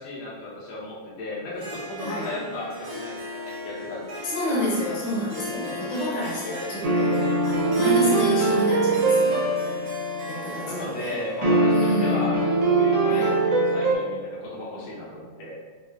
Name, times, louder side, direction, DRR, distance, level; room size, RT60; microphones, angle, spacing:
voice 1, 0.0-4.0 4.3-4.6 10.6-15.6, left 1 dB, 70° left, -6 dB, 1.2 m, -35 dB
Harp, 1.5-13.4, equal, 65° right, 1.5 m, -38 dB
voice 2, 4.2-9.4 10.3-10.7 11.0-11.1 11.7-12.3 13.1-13.3, left 1 dB, 85° left, -6 dB, 2.7 m, -29 dB
sound 1, 6.8-10.5 11.4-14.0, right 3 dB, 80° right, 1.4 m, -22 dB
6.4 x 2.1 x 2.3 m, 1.4 s
omnidirectional pair, 3.5 m